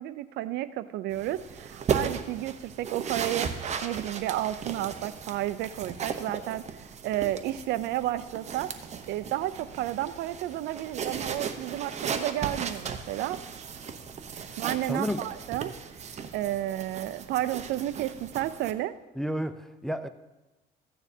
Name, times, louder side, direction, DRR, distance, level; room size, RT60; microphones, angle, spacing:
voice 1, 0.0-3.5 3.8-6.6 7.0-8.7 9.1-13.4 14.6-15.7 16.3-18.9, right 14 dB, 80° right, 15 dB, 0.4 m, -31 dB
sound 1, 1.1-18.7, right 6 dB, 40° right, 0.8 m, -36 dB
voice 2, 14.9-15.3 19.2-20.1, equal, ahead, 9 dB, 0.4 m, -31 dB
14.5 x 9.3 x 2.7 m, 1.1 s
cardioid pair, 110°, 17 cm